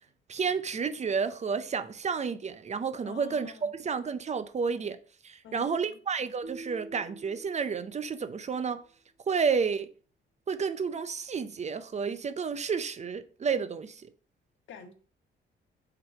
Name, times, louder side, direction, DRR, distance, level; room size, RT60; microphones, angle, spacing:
voice 1, 0.3-5.0 5.2-8.8 9.3-9.9 10.5-14.1, right 5 dB, 35° right, 0.6 m, -31 dB
voice 2, 3.0-3.7 5.4-6.0 14.7-14.9, left 7 dB, 70° left, 1.1 m, -47 dB
sound 1, 6.4-8.6, right 2 dB, 80° right, 0.9 m, -47 dB
5.9 x 4.0 x 4.6 m
cardioid pair, 90°, 20 cm